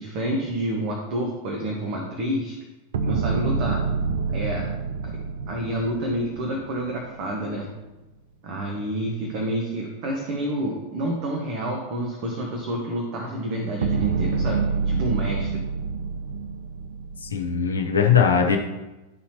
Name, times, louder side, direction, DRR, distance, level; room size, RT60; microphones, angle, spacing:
voice 1, 0.0-2.6 3.0-3.8 4.3-4.7 5.5-7.7 8.4-14.6 14.8-15.6, right 1 dB, 45° right, 0 dB, 1.2 m, -28 dB
sound 1, 2.9-7.2 13.8-17.6, right 4 dB, 60° right, 0.5 m, -27 dB
voice 2, 17.2-18.6, left 7 dB, 70° left, 2 dB, 1.0 m, -20 dB
11.5 x 4.3 x 2.9 m, 1.1 s
figure-of-eight pair, 90°, 0 cm